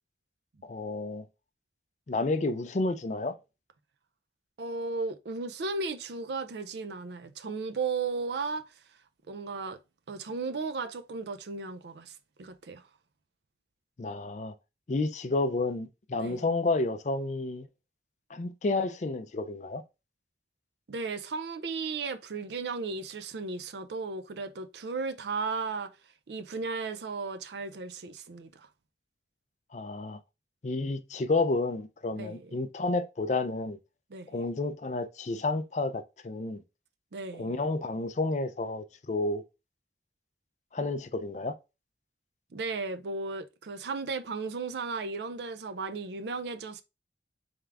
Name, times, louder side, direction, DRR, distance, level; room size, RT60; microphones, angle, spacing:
voice 1, 0.6-1.2 2.1-3.3 14.0-14.5 14.9-17.7 18.3-19.8 29.7-30.2 30.6-33.8 34.3-36.6 37.3-39.4 40.7-41.5, left 3 dB, 40° left, 0.4 m, -30 dB
voice 2, 4.6-8.7 9.3-9.8 10.1-12.8 16.2-16.5 20.9-26.0 26.3-28.7 32.1-32.6 34.1-34.4 37.1-37.5 42.5-46.8, right 4 dB, 70° right, 0.5 m, -35 dB
3.6 x 3.4 x 3.4 m
head